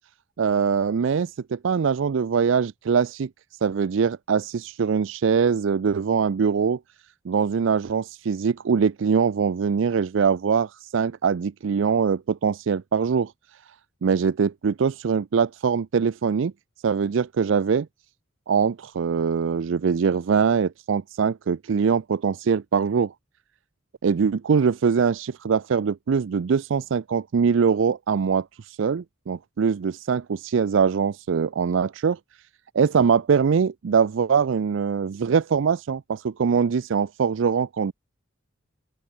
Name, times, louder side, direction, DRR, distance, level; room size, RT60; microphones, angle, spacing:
voice 1, 0.4-3.3 3.6-6.8 7.3-13.3 14.0-16.5 16.8-17.9 18.5-23.1 24.0-32.2 32.7-37.9, right 6 dB, 65° right, 0.4 m, -22 dB
open air
head